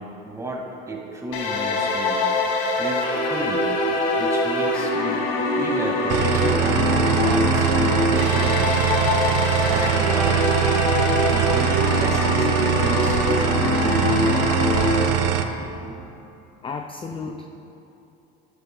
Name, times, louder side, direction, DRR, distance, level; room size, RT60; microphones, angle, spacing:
voice 1, 0.0-2.2 2.8-3.8 4.2-5.3 5.6-9.0 9.7-10.5 11.2-13.2 13.7-14.6 15.4-16.0 17.3-17.4, right 1 dB, 10° right, 0 dB, 1.9 m, -33 dB
sound 1, 1.3-15.0, left 2 dB, 80° left, 1.6 m, -23 dB
sound 2, 6.1-15.4, right 10 dB, 55° right, 0.8 m, -22 dB
voice 2, 16.6-17.4, left 5 dB, 20° left, 5 dB, 0.5 m, -33 dB
14.5 x 10.5 x 2.3 m, 2.8 s
hypercardioid pair, 80°, 29 cm